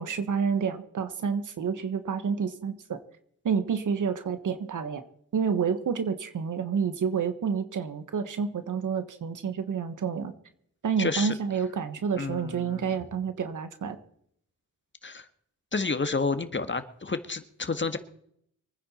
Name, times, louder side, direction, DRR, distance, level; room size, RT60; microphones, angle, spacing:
voice 1, 0.0-3.0 3.4-5.0 5.3-10.3 10.8-14.0, right 6 dB, 90° right, 10 dB, 1.4 m, -29 dB
voice 2, 11.0-11.3 12.1-13.0 15.0-15.3 15.7-18.0, left 4 dB, 40° left, 10 dB, 1.7 m, -30 dB
24.5 x 9.9 x 4.4 m, 0.69 s
cardioid pair, 55°, 30 cm